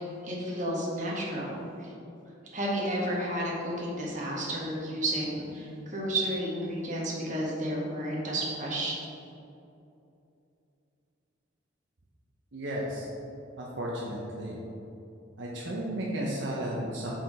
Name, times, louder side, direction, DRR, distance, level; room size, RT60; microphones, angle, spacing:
voice 1, 0.2-1.9 2.5-9.0, right 1 dB, 40° right, -4 dB, 1.4 m, -32 dB
voice 2, 12.5-13.1 13.6-14.6 15.4-17.1, right 1 dB, 65° right, -4 dB, 0.8 m, -33 dB
5.9 x 4.6 x 4.8 m, 2.7 s
head